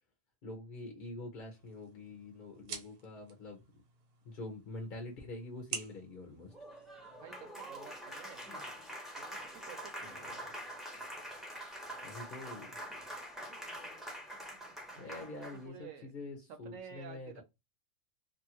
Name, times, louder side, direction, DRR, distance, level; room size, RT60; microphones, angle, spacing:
voice 1, 0.4-3.6 4.2-6.5 10.0-10.3 12.0-12.7 15.0-17.4, left 2 dB, 50° left, 0.6 m, -46 dB
sound 1, 1.4-7.4, right 6 dB, 85° right, 1.3 m, -49 dB
Applause, 6.5-15.7, equal, ahead, 0.5 m, -45 dB
voice 2, 7.2-8.6 9.2-10.6 14.9-16.1 16.6-17.4, right 7 dB, 65° right, 0.9 m, -52 dB
2.7 x 2.5 x 2.8 m
omnidirectional pair, 1.6 m